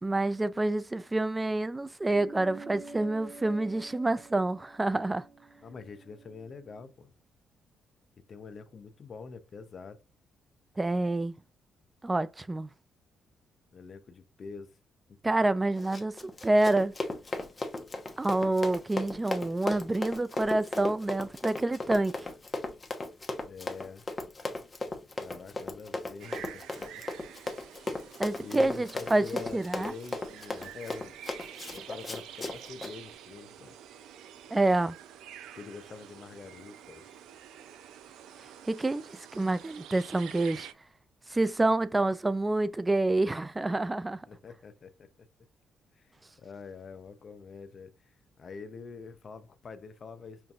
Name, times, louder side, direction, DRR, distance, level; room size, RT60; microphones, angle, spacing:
voice 1, 0.0-5.2 10.8-11.3 12.0-12.7 15.2-16.9 18.2-22.3 28.2-29.3 29.5-29.9 34.5-35.0 38.7-40.7 41.3-44.3, right 2 dB, 15° right, 0.4 m, -27 dB
sound 1, 2.1-6.9, right 3 dB, 50° right, 1.5 m, -49 dB
voice 2, 5.6-7.1 8.3-10.0 13.7-14.7 23.4-24.0 25.2-27.0 27.9-31.1 31.7-33.8 35.5-37.2 44.3-45.3 46.0-46.1 46.4-50.5, left 5 dB, 45° left, 0.6 m, -46 dB
Run, 15.7-32.9, left 2 dB, 25° left, 1.0 m, -37 dB
sound 2, 26.2-40.7, right 10 dB, 90° right, 0.4 m, -48 dB
5.7 x 2.5 x 2.3 m
cardioid pair, 90°, 0 cm